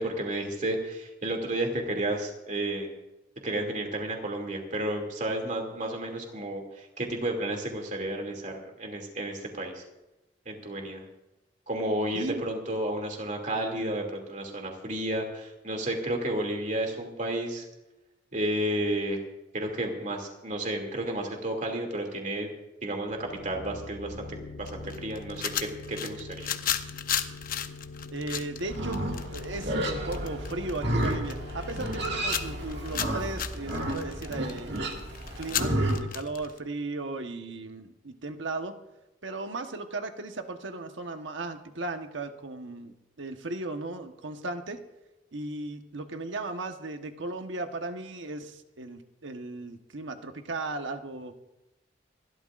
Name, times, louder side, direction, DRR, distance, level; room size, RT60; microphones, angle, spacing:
voice 1, 0.0-2.9 3.4-9.8 10.5-11.0 11.7-17.6 18.3-19.2 19.5-22.5 22.8-24.3 24.6-26.5, right 1 dB, 40° right, 2 dB, 2.5 m, -32 dB
voice 2, 12.1-12.5 28.1-29.0 29.3-34.7 35.4-38.7 39.2-44.8 45.3-51.4, right 2 dB, 80° right, 6 dB, 1.2 m, -36 dB
sound 1, 22.9-34.5, left 3 dB, 85° left, 1.6 m, -44 dB
sound 2, 24.7-36.6, left 9 dB, 50° left, 0.8 m, -35 dB
Livestock farm animals working animals, 28.7-36.0, right 1 dB, 65° right, 2.0 m, -31 dB
27.5 x 12.5 x 2.5 m, 0.98 s
head